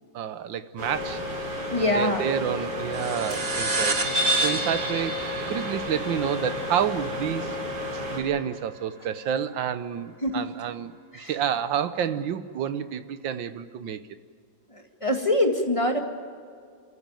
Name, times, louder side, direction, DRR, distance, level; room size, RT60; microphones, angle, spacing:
voice 1, 0.1-1.5 1.8-7.5 8.1-14.0, right 8 dB, 75° right, 12 dB, 1.6 m, -29 dB
sound 1, 0.8-8.2, left 1 dB, 55° right, 6.1 m, -32 dB
voice 2, 1.7-2.3 10.2-10.5 11.1-11.3 14.7-16.0, left 1 dB, 15° left, 3 dB, 1.9 m, -24 dB
sound 2, 2.9-7.9, right 2 dB, 25° right, 1.5 m, -29 dB
27.5 x 14.5 x 9.1 m, 2.2 s
omnidirectional pair, 2.1 m